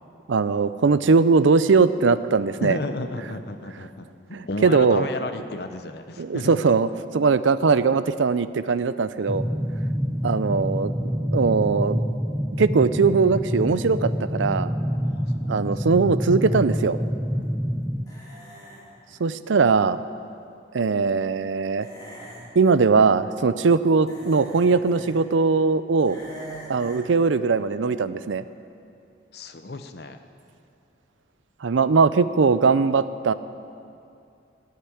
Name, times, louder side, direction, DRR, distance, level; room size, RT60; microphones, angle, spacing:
voice 1, 0.3-2.8 4.3-5.1 6.2-6.9 7.1-9.5 10.2-10.9 11.2-12.0 12.6-14.7 15.5-17.0 19.2-20.0 20.7-21.9 22.6-26.2 26.7-28.4 31.6-33.3, right 4 dB, 85° right, 14 dB, 0.5 m, -20 dB
voice 2, 2.6-4.1 4.5-6.7 15.0-15.5 19.1-19.3 29.3-30.2, left 2 dB, 55° left, 8 dB, 0.8 m, -33 dB
sound 1, 9.3-18.0, equal, ahead, 0.4 m, -27 dB
sound 2, 18.1-18.9 21.8-22.5 24.1-25.1 26.1-27.1, right 1 dB, 20° left, 3.3 m, -42 dB
16.0 x 6.7 x 9.9 m, 2.5 s
head